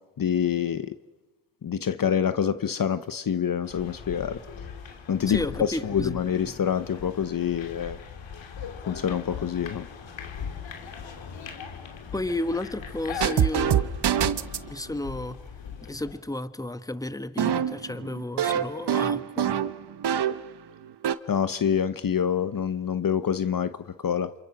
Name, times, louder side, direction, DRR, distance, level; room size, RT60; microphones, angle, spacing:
voice 1, 0.2-0.9 1.6-4.4 5.1-8.0 8.9-9.9 21.3-24.3, left 8 dB, 45° left, 1.0 m, -26 dB
sound 1, 3.7-16.2, left 7 dB, 75° left, 3.2 m, -39 dB
voice 2, 5.3-6.5 12.1-13.9 14.7-15.4 15.9-19.6, left 1 dB, 10° left, 1.5 m, -33 dB
sound 2, 13.2-14.7 17.4-20.5 20.8-21.1, right 9 dB, 60° right, 1.2 m, -25 dB
27.5 x 27.5 x 6.1 m
supercardioid pair, 60°, 46 cm